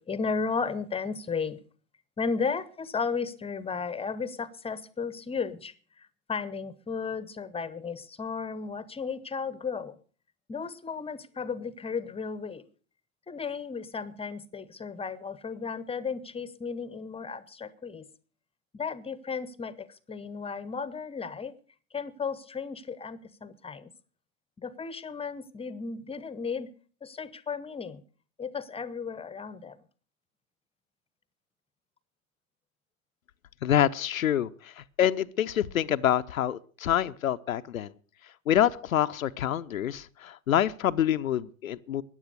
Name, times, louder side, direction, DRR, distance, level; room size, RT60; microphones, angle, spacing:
voice 1, 0.0-1.6 2.2-10.0 10.5-12.6 13.3-18.1 18.7-21.5 21.9-23.9 24.6-26.7 27.0-28.0 28.4-29.8, left 5 dB, 15° left, 17 dB, 0.8 m, -34 dB
voice 2, 33.6-37.9 38.5-42.0, left 10 dB, 85° left, 10 dB, 0.7 m, -26 dB
14.5 x 9.9 x 6.6 m, 0.42 s
hypercardioid pair, 90°, 40 cm